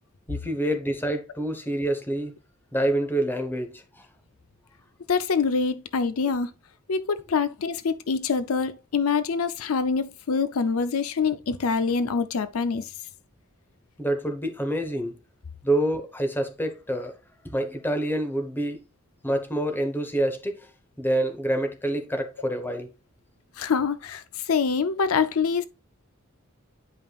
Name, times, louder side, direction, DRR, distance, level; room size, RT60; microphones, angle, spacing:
voice 1, 0.3-2.3 2.7-4.0 14.0-15.2 15.6-17.1 17.4-18.8 19.2-20.7 21.0-22.9, right 1 dB, 10° left, 1.0 m, -27 dB
voice 2, 5.1-6.5 6.9-12.9 23.6-25.6, left 5 dB, 80° left, 0.5 m, -25 dB
9.6 x 5.4 x 2.4 m
head